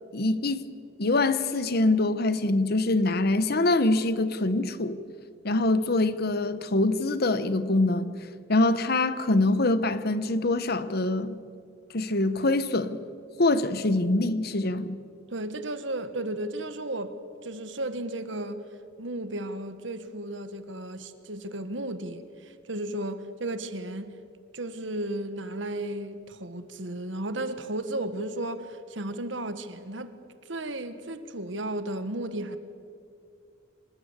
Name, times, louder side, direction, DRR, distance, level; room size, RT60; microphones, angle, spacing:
voice 1, 0.1-0.6 1.0-5.0 5.4-8.1 8.5-11.4 11.9-13.0 13.4-15.0, left 2 dB, 55° left, 1.1 m, -24 dB
voice 2, 15.3-18.6 19.0-24.2 24.5-30.2 30.4-32.6, right 1 dB, 70° right, 1.5 m, -34 dB
26.0 x 19.5 x 8.1 m
head